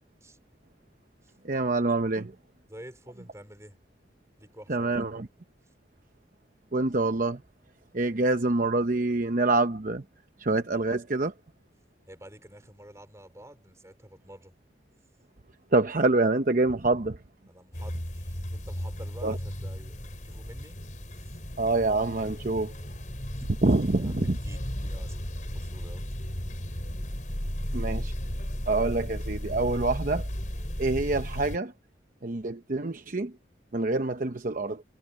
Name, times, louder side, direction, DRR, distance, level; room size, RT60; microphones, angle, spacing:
voice 1, 1.4-2.3 4.7-5.3 6.7-7.4 7.9-10.0 10.4-11.3 15.7-17.2 19.2-19.4 21.6-22.7 23.4-24.4 27.7-28.1 28.7-30.3 30.8-31.7 32.2-33.3 33.7-34.8, right 2 dB, 45° right, 0.9 m, -26 dB
voice 2, 2.7-3.8 4.4-5.1 12.1-14.5 17.5-20.8 21.1-21.4 23.4-23.5 23.7-26.1, right 1 dB, 15° right, 4.9 m, -49 dB
sound 1, 17.7-31.6, equal, 45° left, 4.8 m, -35 dB
head